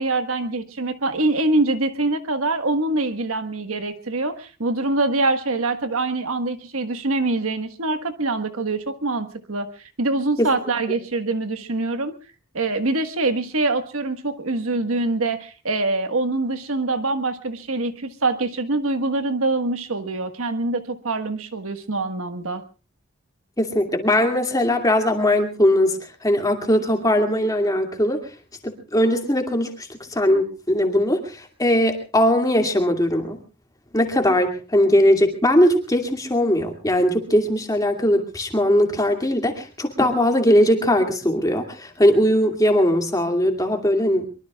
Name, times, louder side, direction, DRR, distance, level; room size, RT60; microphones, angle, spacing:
voice 1, 0.0-9.7 10.0-12.1 12.5-22.6, right 2 dB, 80° right, 8 dB, 1.6 m, -24 dB
voice 2, 23.6-28.2 28.6-33.4 33.9-44.3, left 1 dB, 15° left, 4 dB, 2.4 m, -20 dB
23.5 x 23.5 x 2.4 m, 0.33 s
head